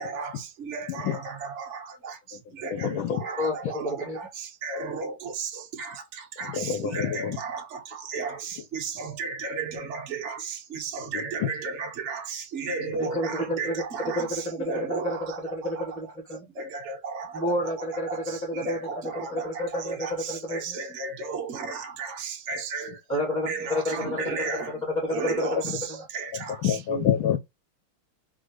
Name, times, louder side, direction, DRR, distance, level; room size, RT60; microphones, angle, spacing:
voice 1, 0.0-15.9 16.5-17.4 18.1-23.0 23.4-24.8 25.1-26.8, right 4 dB, 45° right, 1.1 m, -34 dB
voice 2, 2.7-3.2 6.5-7.4 26.6-27.4, left 9 dB, 80° left, 1.4 m, -26 dB
voice 3, 3.4-4.2 12.9-16.5 17.3-18.8 19.1-20.8 23.1-26.1 26.9-27.1, left 1 dB, 5° right, 1.9 m, -30 dB
3.7 x 3.7 x 3.0 m
omnidirectional pair, 2.3 m